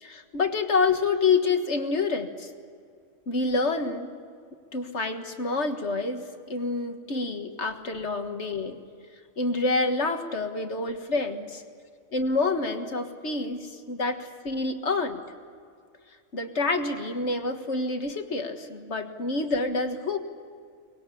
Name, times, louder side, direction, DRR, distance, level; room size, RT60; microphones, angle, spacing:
voice 1, 0.0-2.5 3.3-4.1 4.7-8.8 9.4-11.6 12.1-15.2 16.3-20.2, left 3 dB, 65° left, 6 dB, 1.9 m, -27 dB
23.5 x 21.0 x 8.4 m, 2.2 s
omnidirectional pair, 1.3 m